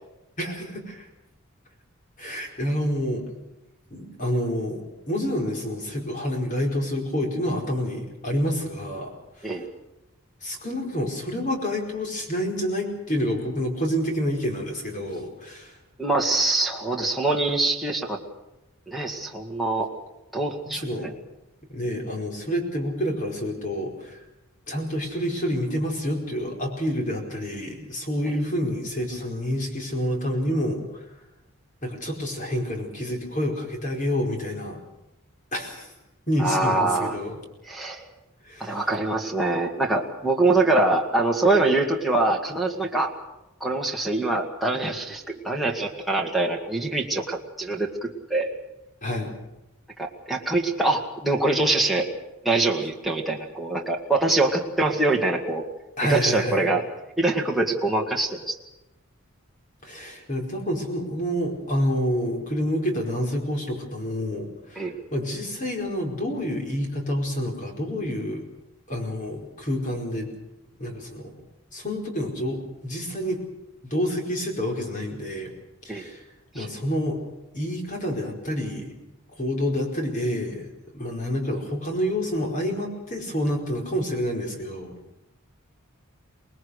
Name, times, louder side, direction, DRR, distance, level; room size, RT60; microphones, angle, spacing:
voice 1, 0.4-1.1 2.2-3.3 3.9-9.1 9.4-9.5 10.4-15.8 20.7-21.1 21.7-24.2 24.7-31.0 31.8-34.8 35.5-35.9 36.3-37.4 38.4-38.8 49.0-49.4 55.0-55.1 56.0-56.7 59.8-68.4 68.9-70.3 70.8-71.3 71.7-73.4 73.8-75.5 75.8-76.3 76.5-77.2 77.5-78.9 79.4-84.9, equal, 40° left, 2 dB, 4.8 m, -28 dB
voice 2, 16.0-18.2 18.9-19.9 20.3-21.1 36.4-37.2 37.7-38.0 38.6-43.1 43.6-48.5 50.0-52.1 52.4-55.7 56.1-56.8 57.2-58.6 64.8-64.9 75.9-76.1 76.6-76.7, right 2 dB, ahead, -1 dB, 2.1 m, -24 dB
25.5 x 20.0 x 6.5 m, 0.96 s
head